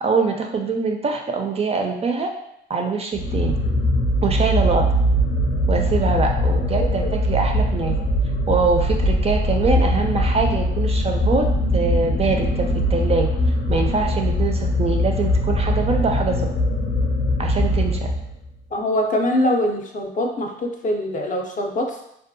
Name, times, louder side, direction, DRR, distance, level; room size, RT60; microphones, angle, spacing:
voice 1, 0.0-2.3 2.7-3.5 4.2-4.9 5.7-8.0 8.5-11.5 11.7-13.3 13.7-16.5 17.4-18.1, right 4 dB, 30° right, 3 dB, 0.3 m, -23 dB
sound 1, 3.1-18.5, equal, 85° left, 0.7 m, -21 dB
voice 2, 18.7-22.0, left 1 dB, 40° left, 2 dB, 0.5 m, -23 dB
2.6 x 2.3 x 2.5 m, 0.77 s
cardioid pair, 90°, 20 cm